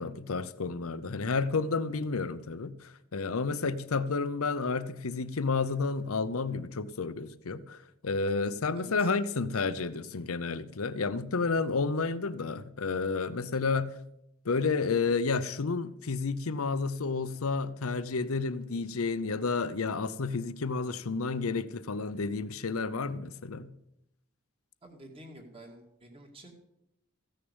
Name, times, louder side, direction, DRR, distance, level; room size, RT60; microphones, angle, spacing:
voice 1, 0.0-13.9 14.4-23.7, left 4 dB, 85° left, 0.7 m, -31 dB
voice 2, 24.8-26.5, right 1 dB, 25° right, 2.3 m, -49 dB
15.5 x 6.5 x 8.1 m
head